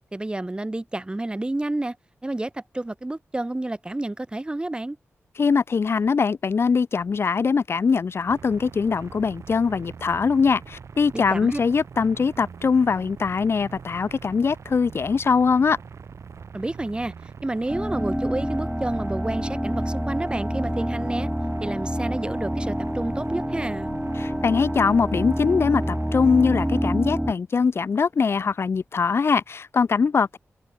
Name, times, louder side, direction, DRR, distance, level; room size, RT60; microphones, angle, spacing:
voice 1, 0.1-2.0 2.2-5.0 11.1-11.6 16.5-21.3 21.6-23.9, right 2 dB, 20° right, 1.6 m, -30 dB
voice 2, 5.4-15.8 24.2-30.4, left 5 dB, 55° left, 0.6 m, -22 dB
sound 1, 8.3-26.9, right 6 dB, 75° right, 2.6 m, -42 dB
sound 2, 17.7-27.3, equal, ahead, 3.6 m, -27 dB
wide cardioid pair, 85°, 5 cm